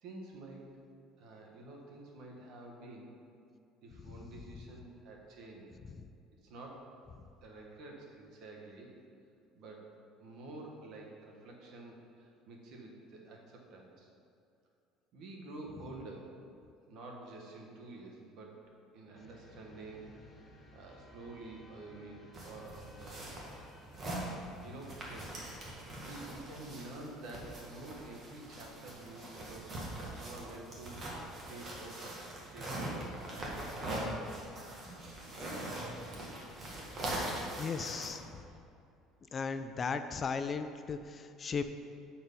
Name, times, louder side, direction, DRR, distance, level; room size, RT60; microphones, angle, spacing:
voice 1, 0.0-0.7 1.2-3.1 3.8-5.7 6.4-6.9 7.4-9.0 9.5-14.1 15.1-16.4 16.9-18.6 18.9-20.2 20.7-23.4 24.3-24.4 24.6-31.0 31.3-33.9, right 2 dB, 60° right, 0 dB, 1.4 m, -49 dB
voice 2, 4.0-4.4 5.8-6.1 7.2-7.3 37.0-38.4 39.3-41.6, left 5 dB, 30° left, 9 dB, 0.3 m, -38 dB
sound 1, 19.1-26.4, left 1 dB, 5° left, 1.2 m, -57 dB
sound 2, 22.3-38.1, right 1 dB, 35° right, 1.5 m, -42 dB
7.4 x 4.4 x 5.3 m, 2.5 s
cardioid pair, 135°, 0 cm